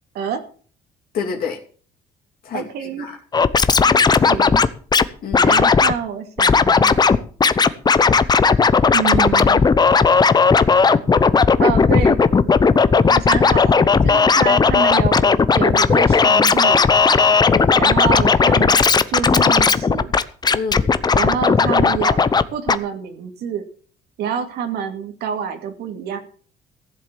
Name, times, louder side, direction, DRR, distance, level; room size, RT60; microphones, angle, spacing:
voice 1, 1.1-1.6 2.4-3.2 3.9-4.3 5.2-5.5 17.5-17.7 20.5-20.9, left 6 dB, 60° left, 0 dB, 3.0 m, -28 dB
voice 2, 2.5-3.2 4.3-4.6 5.4-7.1 8.9-9.6 11.6-12.2 13.1-16.8 17.7-20.1 21.1-22.2 22.5-23.7 24.2-26.2, right 8 dB, 75° right, 5 dB, 2.3 m, -27 dB
Scratching (performance technique), 3.3-5.0 5.3-5.9 6.4-7.2 7.4-22.4 22.7-22.8, left 5 dB, 25° left, 0.8 m, -15 dB
15.0 x 7.6 x 7.3 m, 0.43 s
cardioid pair, 110°, 17 cm